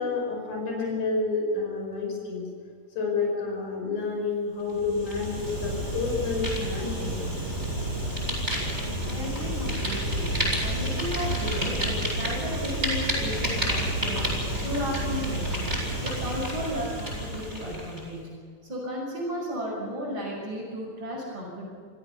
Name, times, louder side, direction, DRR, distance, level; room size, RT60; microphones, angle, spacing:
voice 1, 0.0-2.5 3.0-7.1, left 4 dB, 60° left, 0 dB, 7.0 m, -29 dB
Fire, 4.7-18.1, equal, 15° right, 7.9 m, -29 dB
voice 2, 9.0-14.3 14.6-18.3 18.7-21.7, equal, 35° right, -6 dB, 7.4 m, -34 dB
29.0 x 17.0 x 7.1 m, 2.2 s
omnidirectional pair, 4.0 m